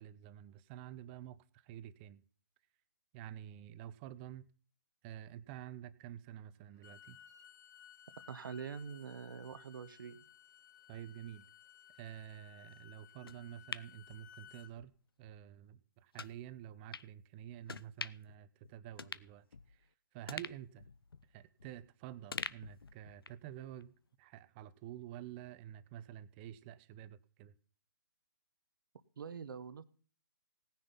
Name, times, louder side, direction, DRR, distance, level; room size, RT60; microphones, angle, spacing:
voice 1, 0.0-2.2 3.1-4.5 5.0-7.2 10.9-11.5 11.9-14.9 15.2-19.9 20.1-20.9 21.3-27.5, right 11 dB, 25° right, 15 dB, 0.8 m, -49 dB
Bowed string instrument, 6.7-14.7, left 9 dB, 55° left, 2.9 m, -59 dB
voice 2, 8.3-10.2 29.2-29.8, right 6 dB, 65° right, 13 dB, 1.1 m, -45 dB
sound 1, 13.3-14.9 15.3-15.4 16.2-16.3 16.9-17.1 17.7-18.3 18.6-18.7 19.0-19.9 20.3-21.9 22.3-23.5 23.8-23.9, left 5 dB, 90° left, 0.6 m, -46 dB
17.5 x 9.8 x 4.0 m, 0.42 s
hypercardioid pair, 140°, 12 cm